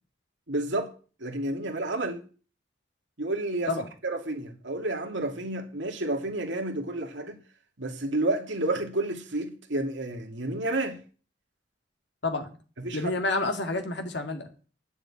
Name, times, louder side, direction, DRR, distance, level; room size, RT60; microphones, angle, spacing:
voice 1, 0.5-0.9 1.2-2.2 3.2-3.8 4.0-7.4 7.8-11.0 12.8-13.1, right 2 dB, 75° right, 2.4 m, -30 dB
voice 2, 12.9-14.5, left 2 dB, 65° left, 2.1 m, -29 dB
9.9 x 7.1 x 8.6 m
head